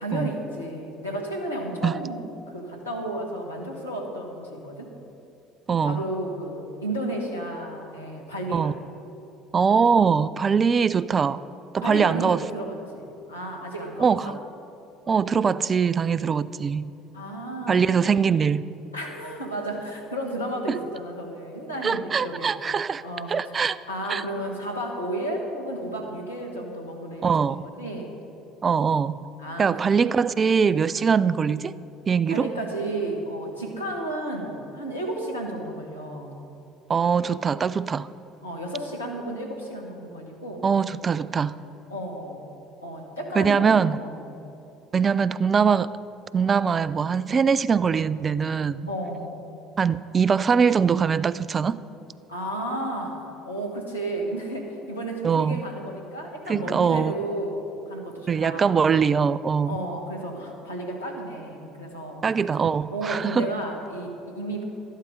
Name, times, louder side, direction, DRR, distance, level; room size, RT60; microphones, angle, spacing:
voice 1, 0.0-4.9 5.8-8.7 11.8-14.3 17.1-17.9 18.9-22.5 23.0-23.6 23.9-28.2 29.4-29.7 32.3-36.4 38.4-40.6 41.9-42.4 42.8-44.3 48.9-49.4 52.3-53.2 53.4-58.8 59.7-62.2 62.9-64.6, right 1 dB, 85° left, -1 dB, 1.5 m, -33 dB
voice 2, 5.7-6.0 8.5-8.7 9.5-11.4 11.7-12.5 14.0-14.4 15.1-16.9 17.7-18.6 21.8-23.0 23.3-23.8 24.1-24.2 27.2-27.6 28.6-29.2 29.6-31.7 32.1-32.5 36.9-38.1 40.6-41.6 43.4-44.0 44.9-45.9 46.3-48.9 49.8-51.8 55.2-55.6 56.5-57.2 58.3-59.8 62.2-63.5, right 6 dB, 30° right, 17 dB, 0.4 m, -22 dB
12.0 x 11.0 x 5.2 m, 2.8 s
figure-of-eight pair, 60°, 0 cm